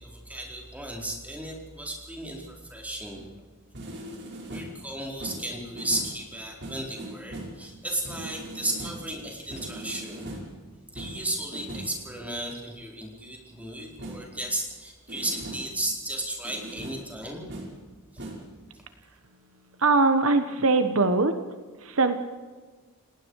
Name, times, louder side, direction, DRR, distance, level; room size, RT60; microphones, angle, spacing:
voice 1, 0.0-3.2 4.5-10.2 10.9-17.5, right 1 dB, 5° right, -1 dB, 4.5 m, -34 dB
sound 1, 3.1-3.4 3.7-4.8 5.2-6.2 6.6-7.6 8.0-9.1 9.5-10.6 11.0-12.0 14.0-14.3 15.1-15.8 16.4-17.1 17.5-17.8 18.2-18.5, right 1 dB, 55° right, 5.5 m, -40 dB
voice 2, 19.8-21.3 21.8-22.2, right 3 dB, 70° right, 9 dB, 1.4 m, -21 dB
30.0 x 18.5 x 4.9 m, 1.4 s
head